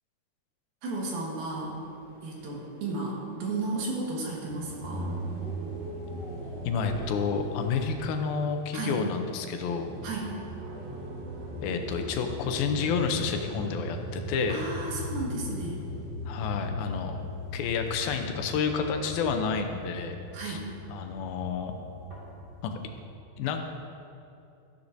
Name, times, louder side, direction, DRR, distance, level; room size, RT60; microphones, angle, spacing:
voice 1, 0.8-1.8 2.2-5.2 8.7-9.0 10.0-10.3 14.5-15.8 20.3-20.7, right 3 dB, 80° right, -3 dB, 3.5 m, -33 dB
sound 1, 1.4-7.9, left 1 dB, 65° left, 0.7 m, -47 dB
sound 2, 4.3-16.3, right 2 dB, 60° right, 2.2 m, -41 dB
voice 2, 6.7-9.9 11.6-14.6 16.3-17.2 17.5-20.2 20.4-20.6 20.9-21.8 22.6-22.7 23.4-23.6, left 5 dB, 85° left, 5 dB, 2.6 m, -30 dB
sound 3, 9.7-23.0, left 2 dB, 30° right, 1.8 m, -40 dB
13.0 x 10.0 x 2.6 m, 2.7 s
omnidirectional pair, 4.2 m